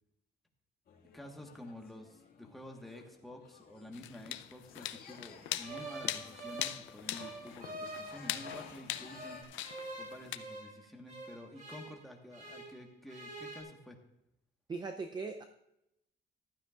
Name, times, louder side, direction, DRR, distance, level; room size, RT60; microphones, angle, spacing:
sound 1, 0.9-9.4, left 5 dB, 50° left, 2.0 m, -57 dB
voice 1, 1.1-14.0, left 1 dB, ahead, 1 dB, 1.4 m, -50 dB
sound 2, 3.9-10.4, left 13 dB, 80° left, 0.6 m, -41 dB
sound 3, 5.6-8.8 9.1-12.8 13.1-13.6, right 2 dB, 40° right, 3.2 m, -46 dB
voice 2, 14.7-15.4, right 4 dB, 20° right, 6 dB, 0.5 m, -39 dB
15.0 x 12.0 x 2.4 m, 0.83 s
cardioid pair, 160°, 20 cm